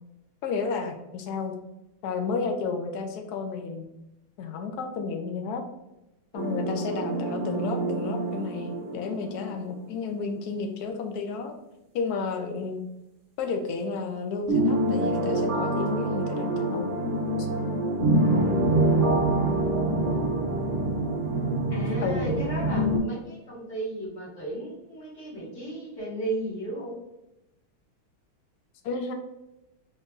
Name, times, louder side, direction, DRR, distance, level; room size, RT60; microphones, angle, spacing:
voice 1, 0.4-1.5 2.0-3.8 4.4-5.6 6.3-11.5 11.9-12.8 13.4-16.9 17.4-17.5 22.0-22.3 28.8-29.1, left 4 dB, 80° left, 5 dB, 0.8 m, -32 dB
sound 1, 6.3-9.7 10.0-10.1 14.5-23.0, right 1 dB, 80° right, 0.4 m, -26 dB
voice 2, 18.5-19.6 21.7-26.9, right 1 dB, 40° left, -7 dB, 1.8 m, -35 dB
4.4 x 3.2 x 2.4 m, 0.93 s
omnidirectional pair, 2.2 m